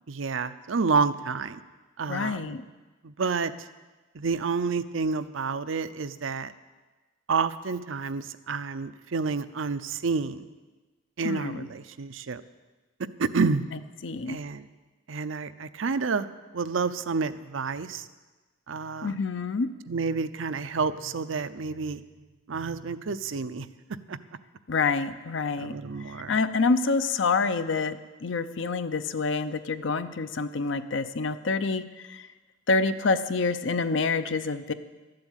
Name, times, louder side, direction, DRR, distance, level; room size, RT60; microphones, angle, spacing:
voice 1, 0.1-1.6 2.0-2.6 3.0-3.7 4.1-6.5 7.3-10.4 11.2-12.4 13.2-13.6 14.3-14.7 15.1-16.3 16.5-18.1 18.7-19.2 19.9-22.0 22.5-23.7 24.1-24.2 25.6-26.4, right 4 dB, 80° right, 13 dB, 0.6 m, -29 dB
voice 2, 2.1-2.6 11.2-11.7 14.0-14.4 19.0-19.7 24.7-25.8 26.3-31.8 32.1-32.3 32.7-34.7, left 4 dB, 65° left, 11 dB, 0.7 m, -27 dB
12.5 x 7.8 x 9.0 m, 1.3 s
head